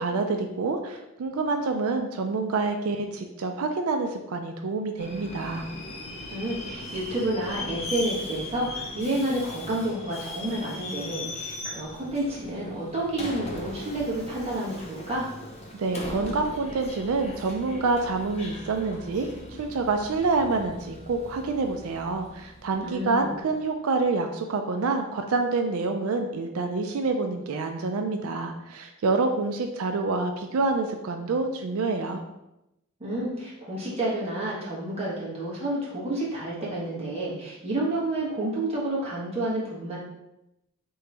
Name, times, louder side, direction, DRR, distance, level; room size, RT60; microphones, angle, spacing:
voice 1, 0.0-5.7 15.7-19.3 19.6-32.2, right 3 dB, 85° right, 5 dB, 0.4 m, -27 dB
Subway metro underground, 5.0-23.4, left 2 dB, 30° left, 0.6 m, -39 dB
voice 2, 6.3-15.3 22.8-23.3 33.0-40.0, right 1 dB, 30° right, -6 dB, 1.3 m, -30 dB
3.8 x 3.1 x 3.4 m, 0.89 s
head